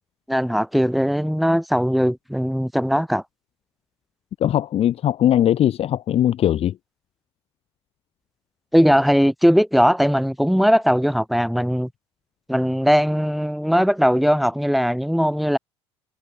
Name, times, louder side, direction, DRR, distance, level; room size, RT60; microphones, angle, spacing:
voice 1, 0.3-3.2 8.7-11.9 12.5-15.6, equal, ahead, 7.4 m, -19 dB
voice 2, 4.4-6.7, left 11 dB, 45° left, 1.8 m, -19 dB
figure-of-eight pair, 65°, 15 cm